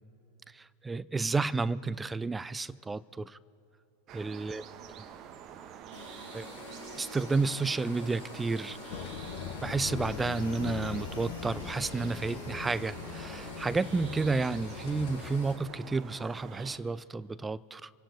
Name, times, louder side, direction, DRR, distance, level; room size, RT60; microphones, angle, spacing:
voice 1, 0.5-3.4 4.1-4.6 6.3-6.4 6.9-8.8 9.6-17.9, right 3 dB, 10° right, 0.3 m, -31 dB
sound 1, 4.1-16.8, right 8 dB, 35° right, 1.0 m, -48 dB
sound 2, 5.9-15.5, left 3 dB, 65° left, 3.8 m, -47 dB
sound 3, 8.9-15.4, left 8 dB, 50° left, 1.0 m, -41 dB
28.5 x 16.5 x 2.8 m
figure-of-eight pair, 90°, 0 cm